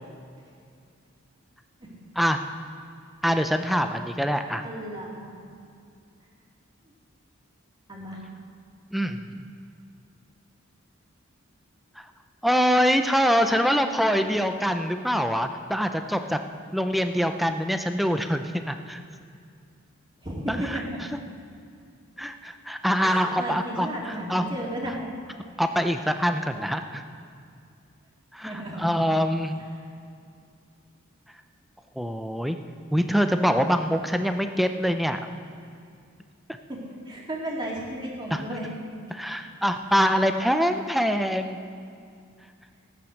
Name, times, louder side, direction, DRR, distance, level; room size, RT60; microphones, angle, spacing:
voice 1, 3.2-4.6 8.9-9.4 12.0-12.1 12.4-16.4 16.7-19.0 20.5-20.8 21.1-21.2 22.2-24.5 25.6-27.0 28.3-29.5 32.0-32.6 32.9-35.2 38.3-38.4 39.1-41.6, equal, ahead, 7 dB, 0.5 m, -24 dB
voice 2, 4.6-5.3 7.9-8.2 14.2-14.4 20.2-20.8 23.0-25.1 28.4-28.9 36.7-36.8 37.1-38.7, right 1 dB, 25° right, -4 dB, 2.7 m, -34 dB
16.0 x 8.9 x 6.5 m, 2.4 s
head